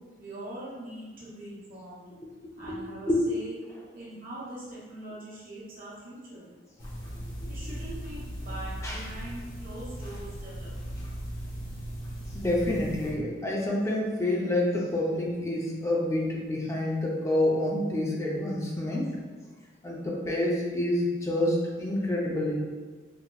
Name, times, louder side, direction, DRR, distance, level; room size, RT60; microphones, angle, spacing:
voice 1, 0.1-2.0 2.6-3.6 3.9-6.4 7.5-11.0 16.3-16.4, right 1 dB, 50° right, -7 dB, 1.1 m, -42 dB
sound 1, 6.8-13.1, equal, 50° left, 1.0 m, -38 dB
voice 2, 12.3-19.1 19.8-22.6, left 1 dB, 15° left, -3 dB, 0.5 m, -28 dB
4.1 x 3.0 x 2.3 m, 1.4 s
head